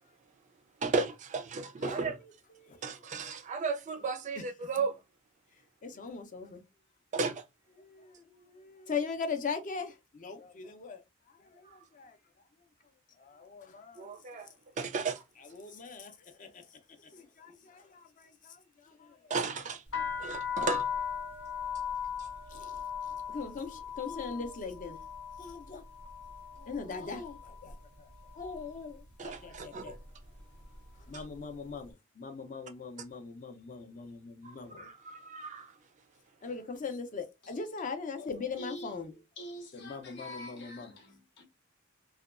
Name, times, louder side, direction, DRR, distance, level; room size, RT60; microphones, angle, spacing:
voice 1, 0.8-2.2 2.8-5.0 7.1-7.4 11.6-11.8 14.0-14.5 14.8-15.2 19.3-19.8 20.2-20.9 22.2-22.3 29.2-30.0 31.1-31.2 34.4-35.7, right 4 dB, 35° right, 0.3 m, -34 dB
voice 2, 5.8-6.6 7.8-11.0 11.4-12.2 13.2-14.5 15.5-16.6 17.0-19.3 22.5-22.8 23.3-25.0 25.4-25.8 26.6-28.1 28.3-29.9 31.1-34.9 36.4-39.1 39.7-40.9, left 5 dB, 40° left, 0.5 m, -40 dB
sound 1, 19.9-27.8 28.1-28.7 29.4-29.6 29.9-31.4, left 7 dB, 85° left, 1.1 m, -38 dB
voice 3, 38.2-41.4, equal, 55° left, 0.8 m, -47 dB
2.8 x 2.2 x 2.4 m
head